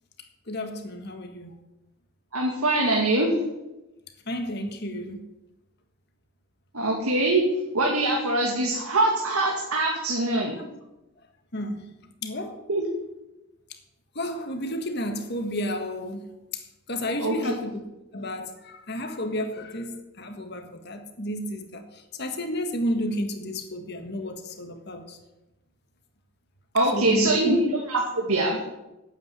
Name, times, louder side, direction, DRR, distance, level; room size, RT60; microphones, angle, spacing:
voice 1, 0.5-1.5 4.3-5.3 11.5-11.9 12.2-12.6 14.1-16.3 16.5-17.8 18.1-25.2 26.9-27.5, equal, 50° left, 1.6 m, -31 dB
voice 2, 2.3-3.4 6.7-7.4 7.7-10.6 12.7-12.8 17.2-17.3 26.7-27.6 27.9-28.6, right 2 dB, 90° right, 2.3 m, -23 dB
8.9 x 8.9 x 8.9 m
head